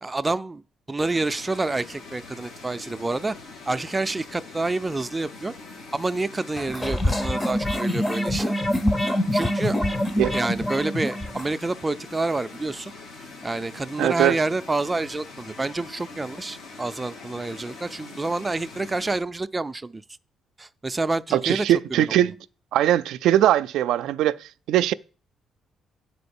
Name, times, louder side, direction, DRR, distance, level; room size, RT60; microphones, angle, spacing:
voice 1, 0.0-0.6 0.9-3.4 3.7-5.5 5.9-8.5 9.3-9.8 10.3-12.9 13.4-20.0 20.6-22.1, right 2 dB, 20° right, 0.4 m, -28 dB
sound 1, 1.0-19.2, left 3 dB, 80° left, 2.2 m, -43 dB
sound 2, 6.6-11.5, left 1 dB, 15° left, 0.8 m, -25 dB
voice 2, 14.0-14.4 21.3-22.3 22.7-24.9, right 12 dB, 85° right, 0.3 m, -21 dB
9.4 x 4.3 x 7.1 m
cardioid pair, 90°, 0 cm